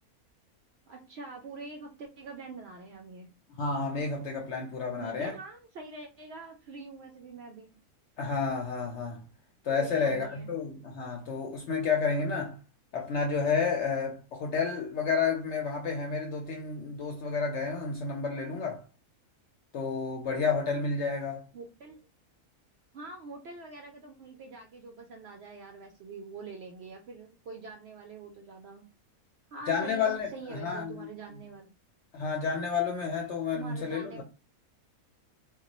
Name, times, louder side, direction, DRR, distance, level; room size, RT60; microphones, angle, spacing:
voice 1, 0.9-3.3 5.0-7.7 9.7-10.5 21.5-22.1 22.9-28.9 29.5-31.7 33.5-34.2, right 3 dB, 70° right, 0.6 m, -45 dB
voice 2, 3.6-5.3 8.2-9.2 9.6-12.6 12.9-18.8 19.7-21.4 29.7-31.1 32.1-34.2, left 5 dB, 65° left, 0.7 m, -30 dB
2.3 x 2.1 x 3.9 m
omnidirectional pair, 1.6 m